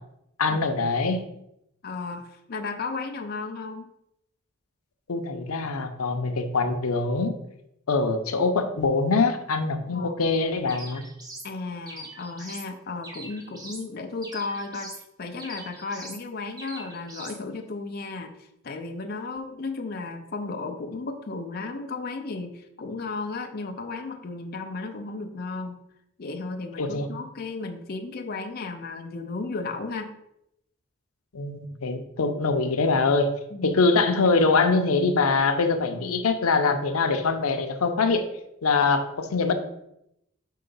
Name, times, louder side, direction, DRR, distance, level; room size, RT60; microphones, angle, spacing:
voice 1, 0.4-1.3 5.1-7.4 7.9-11.0 26.8-27.1 31.3-33.3 33.6-38.3 38.6-39.5, left 4 dB, 90° left, 7 dB, 0.6 m, -23 dB
voice 2, 1.8-3.9 9.9-10.1 11.4-25.8 26.2-30.1 33.5-33.7 36.0-36.2, left 3 dB, 45° left, 5 dB, 0.5 m, -34 dB
sound 1, 10.7-11.5 11.9-12.7 13.0-13.9 14.2-15.1 15.4-16.2 16.6-17.4, right 1 dB, 20° right, 1.0 m, -42 dB
4.6 x 3.8 x 5.4 m, 0.81 s
head